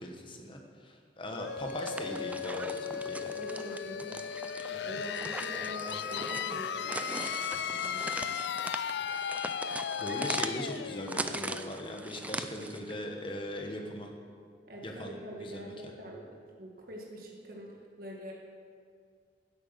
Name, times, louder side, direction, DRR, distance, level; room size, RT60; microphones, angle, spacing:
voice 1, 0.0-3.4 10.0-14.1 14.8-15.7, left 1 dB, 30° left, 2 dB, 1.4 m, -40 dB
sound 1, 1.3-12.8, left 8 dB, 65° left, 0.3 m, -37 dB
sound 2, 1.6-12.9, right 2 dB, 10° right, 0.4 m, -40 dB
voice 2, 3.4-4.3 4.7-8.3 14.7-16.3 16.6-18.3, equal, 55° right, -1 dB, 1.7 m, -44 dB
10.5 x 8.1 x 8.0 m, 2.1 s
head